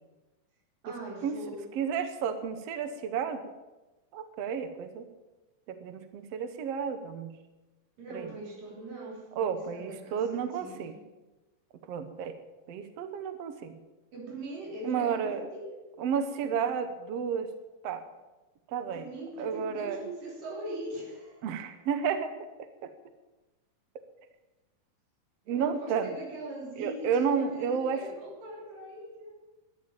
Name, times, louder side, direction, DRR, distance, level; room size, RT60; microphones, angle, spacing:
voice 1, 0.8-1.7 8.0-11.0 14.1-15.8 16.4-16.6 18.9-21.5 25.5-29.4, right 1 dB, 85° right, -1 dB, 5.3 m, -41 dB
voice 2, 1.8-3.4 4.1-5.1 5.7-7.3 8.1-8.3 9.4-10.9 11.9-12.3 12.7-13.8 14.8-15.5 16.0-17.5 17.8-18.0 18.7-19.1 19.4-20.0 21.4-22.3 22.8-22.9 25.5-26.1 26.8-28.0, right 7 dB, 65° right, 9 dB, 1.7 m, -31 dB
12.5 x 11.0 x 8.8 m, 1.1 s
omnidirectional pair, 3.8 m